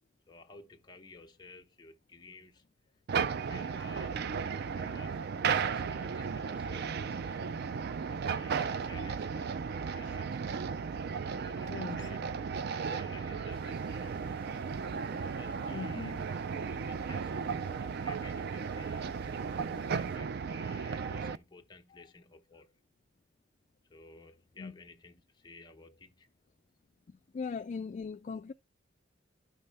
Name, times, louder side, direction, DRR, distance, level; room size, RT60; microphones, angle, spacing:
voice 1, 0.3-2.6 3.2-7.4 8.1-10.4 11.3-12.2 12.7-14.3 15.1-19.1 19.9-22.8 23.9-26.3, left 3 dB, 25° left, 0.9 m, -54 dB
sound 1, 3.1-21.4, right 6 dB, 55° right, 0.4 m, -35 dB
voice 2, 11.7-12.1 15.7-16.3 21.9-22.0 24.6-24.7 27.1-28.5, left 5 dB, 40° left, 0.3 m, -40 dB
sound 2, 13.5-20.2, right 1 dB, 30° right, 1.3 m, -56 dB
12.0 x 5.5 x 3.4 m
head